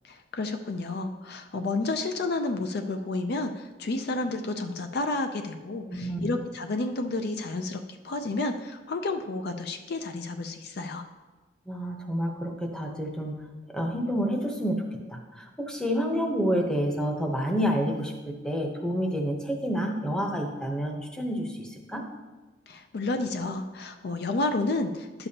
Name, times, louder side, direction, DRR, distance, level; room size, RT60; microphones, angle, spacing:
voice 1, 0.0-11.0 22.7-25.3, left 2 dB, 55° left, 6 dB, 0.5 m, -31 dB
voice 2, 5.9-6.3 11.7-13.4 13.7-14.8 15.1-22.0, equal, 5° left, 1 dB, 0.8 m, -29 dB
11.0 x 6.9 x 2.8 m, 1.2 s
head